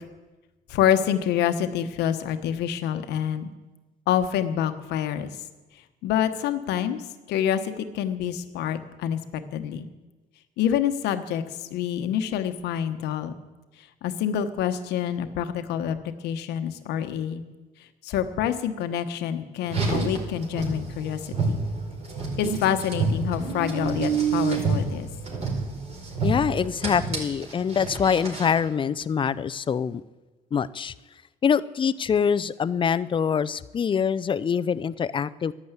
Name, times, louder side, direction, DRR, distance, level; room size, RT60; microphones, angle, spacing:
voice 1, 0.7-3.5 4.1-5.3 6.0-7.0 7.3-9.9 10.6-13.3 14.0-17.4 18.0-21.6 22.4-25.1, left 9 dB, 85° left, 9 dB, 1.1 m, -27 dB
Car, 19.6-28.6, right 4 dB, 40° right, 4.4 m, -28 dB
voice 2, 26.2-30.0 30.5-30.9 31.4-35.5, left 7 dB, 30° left, 15 dB, 0.5 m, -24 dB
11.5 x 11.0 x 8.2 m, 1.2 s
cardioid pair, 110°, 17 cm